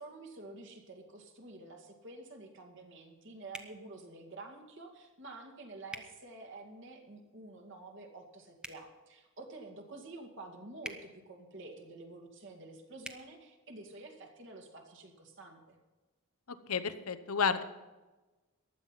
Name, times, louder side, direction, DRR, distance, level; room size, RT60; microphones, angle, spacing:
voice 1, 0.0-15.8, right 2 dB, 55° right, 4 dB, 2.3 m, -49 dB
sound 1, 3.5-3.7 5.9-6.1 8.6-8.8 10.8-11.0 13.0-13.2, right 1 dB, 5° right, 0.9 m, -43 dB
voice 2, 16.7-17.6, left 6 dB, 85° left, 12 dB, 1.0 m, -31 dB
15.0 x 11.0 x 5.8 m, 1.2 s
head